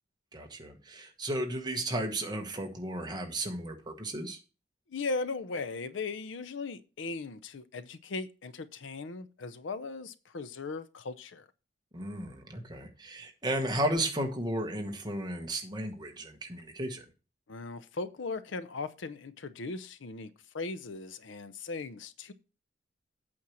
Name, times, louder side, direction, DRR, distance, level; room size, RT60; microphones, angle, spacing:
voice 1, 0.3-4.4 11.9-17.0, right 1 dB, 20° right, 1.2 m, -34 dB
voice 2, 4.9-11.5 17.5-22.3, left 3 dB, 70° left, 0.6 m, -38 dB
8.5 x 4.4 x 6.2 m
head